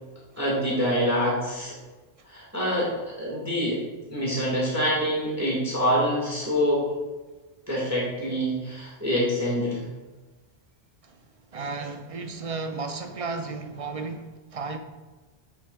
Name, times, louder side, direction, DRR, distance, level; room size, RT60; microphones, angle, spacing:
voice 1, 0.4-1.7 2.3-3.8 4.1-6.8 7.7-9.8, equal, 15° right, 1.5 m, -26 dB
voice 2, 11.5-14.8, right 4 dB, 50° right, 0.4 m, -34 dB
7.8 x 6.7 x 2.3 m
omnidirectional pair, 1.1 m